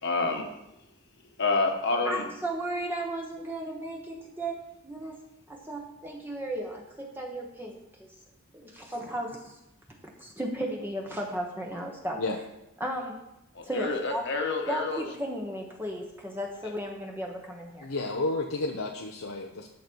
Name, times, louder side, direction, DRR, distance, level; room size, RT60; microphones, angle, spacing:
voice 1, 0.0-0.5 1.4-2.2 13.5-15.0, left 3 dB, 55° left, 1.4 m, -28 dB
voice 2, 2.0-4.6 4.8-5.2 5.5-8.1 8.5-9.6 10.2-12.2 12.8-13.2 13.6-14.2 14.7-17.9, right 1 dB, 10° right, 1.2 m, -35 dB
voice 3, 17.8-19.7, left 2 dB, 80° left, 0.9 m, -31 dB
13.0 x 6.9 x 4.6 m
head